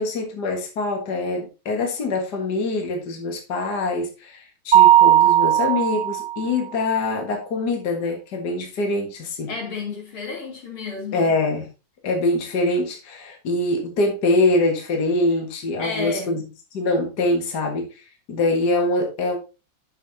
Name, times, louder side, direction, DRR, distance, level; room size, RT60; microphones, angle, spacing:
voice 1, 0.0-9.5 11.1-11.7 12.0-16.4 16.7-19.4, left 2 dB, 55° left, 2.2 m, -24 dB
Mallet percussion, 4.7-6.5, right 12 dB, 80° right, 0.4 m, -16 dB
voice 2, 9.5-11.3 15.8-16.4, left 4 dB, 80° left, 3.8 m, -31 dB
9.6 x 7.3 x 2.8 m
omnidirectional pair, 2.3 m